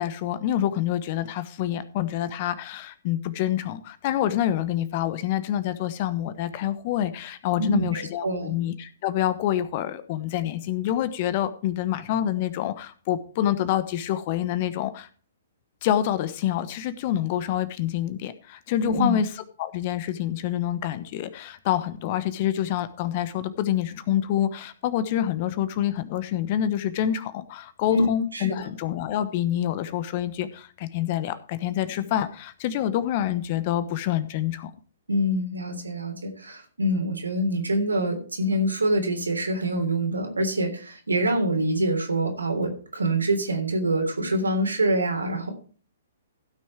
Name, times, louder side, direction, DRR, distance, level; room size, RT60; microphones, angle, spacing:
voice 1, 0.0-15.1 15.8-19.3 19.6-34.7, left 11 dB, 40° left, 13 dB, 1.1 m, -27 dB
voice 2, 7.6-8.5 18.8-19.1 27.9-28.1 28.3-28.7 35.1-45.5, right 1 dB, 80° right, 4 dB, 3.4 m, -25 dB
16.0 x 6.4 x 4.6 m, 0.41 s
figure-of-eight pair, 120°, 0 cm